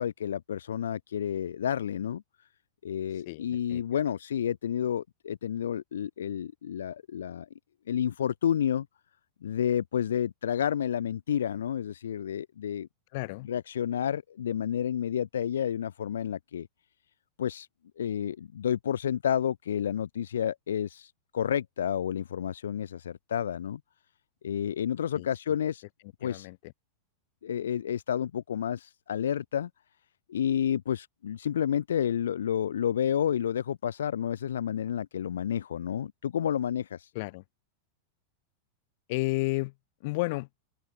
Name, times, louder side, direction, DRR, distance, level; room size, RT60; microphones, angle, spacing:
voice 1, 0.0-2.5 2.8-7.5 7.9-8.9 9.4-12.9 13.4-16.7 17.4-17.7 18.0-23.8 24.4-25.8 26.2-26.5 27.4-29.7 30.3-37.1, left 9 dB, 65° left, 4.2 m, -30 dB
voice 2, 3.3-3.8 13.1-13.5 25.1-25.3 26.2-26.6 37.2-37.4 39.1-39.7 40.0-40.5, left 24 dB, 50° left, 7.4 m, -31 dB
open air
figure-of-eight pair, 90°, 0 cm